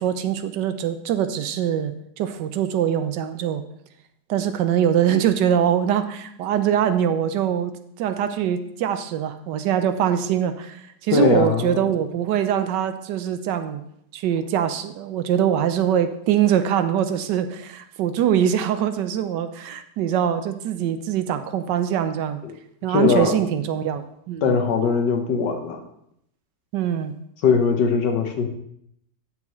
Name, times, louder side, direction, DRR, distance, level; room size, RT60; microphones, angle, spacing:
voice 1, 0.0-3.6 4.3-7.7 8.0-13.8 14.1-22.4 22.8-24.6 26.7-27.1, right 9 dB, 75° right, 10 dB, 1.2 m, -23 dB
voice 2, 11.1-11.9 22.4-22.5 22.9-23.4 24.4-25.8 27.4-28.5, left 5 dB, 70° left, 5 dB, 1.5 m, -20 dB
9.2 x 7.2 x 3.1 m, 0.72 s
omnidirectional pair, 2.0 m